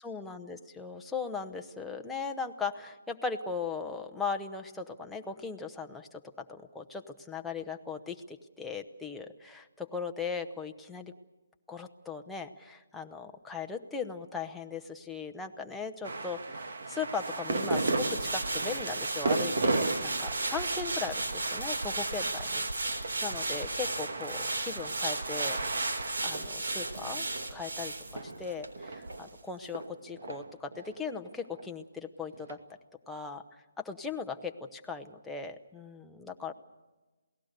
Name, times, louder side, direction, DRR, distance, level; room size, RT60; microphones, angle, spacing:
voice 1, 0.0-11.1 11.7-25.6 26.2-27.2 27.5-32.6 33.1-36.5, left 5 dB, 5° left, 2 dB, 0.8 m, -38 dB
sound 1, 16.0-29.3 29.7-31.7 32.3-32.6, right 3 dB, 65° right, 2.2 m, -35 dB
sound 2, 17.1-28.7 29.1-29.2, right 2 dB, 85° right, 3.6 m, -35 dB
28.0 x 18.0 x 6.7 m, 1.2 s
hypercardioid pair, 170°, 0 cm